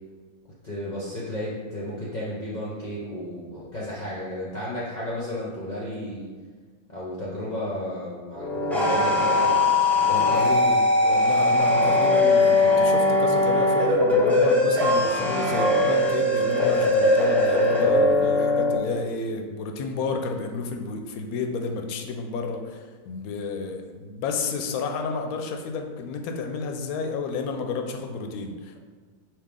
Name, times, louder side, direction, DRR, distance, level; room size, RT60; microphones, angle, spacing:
voice 1, 0.6-6.3 6.9-10.3 17.8-18.1, left 1 dB, 40° left, -7 dB, 0.7 m, -33 dB
sound 1, 8.3-18.8, left 2 dB, ahead, 0.5 m, -20 dB
voice 2, 10.0-28.8, left 4 dB, 75° left, 4 dB, 1.0 m, -31 dB
4.8 x 3.0 x 3.6 m, 1.5 s
omnidirectional pair, 1.6 m